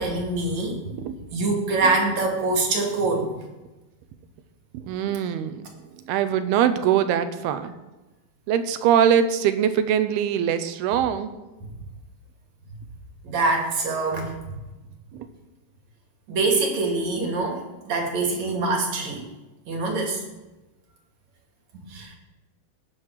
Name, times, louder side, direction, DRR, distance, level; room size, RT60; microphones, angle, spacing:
voice 1, 0.0-0.9 1.3-3.4 13.2-14.3 16.3-17.6 17.9-19.2 19.7-20.2 21.7-22.2, right 3 dB, 50° right, 1 dB, 3.3 m, -24 dB
voice 2, 4.7-5.6 6.1-7.7 8.5-11.3 15.1-15.3, right 9 dB, 85° right, 11 dB, 2.8 m, -22 dB
20.0 x 9.3 x 4.8 m, 1.1 s
omnidirectional pair, 4.5 m